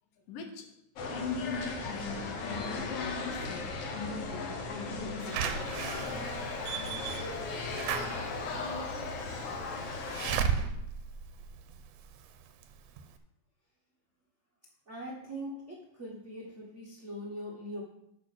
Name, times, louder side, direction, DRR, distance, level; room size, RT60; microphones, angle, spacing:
voice 1, 0.3-0.7 1.1-3.7 3.9-5.9, left 5 dB, 85° left, 5 dB, 2.8 m, -39 dB
sound 1, 1.0-10.4, left 3 dB, 60° left, 1.8 m, -37 dB
Slam / Alarm, 5.3-12.2 12.6-12.7 13.0-13.1, right 7 dB, 85° right, 2.4 m, -35 dB
voice 2, 14.9-17.8, equal, 50° right, -3 dB, 0.8 m, -41 dB
8.8 x 6.2 x 6.0 m, 0.81 s
omnidirectional pair, 3.8 m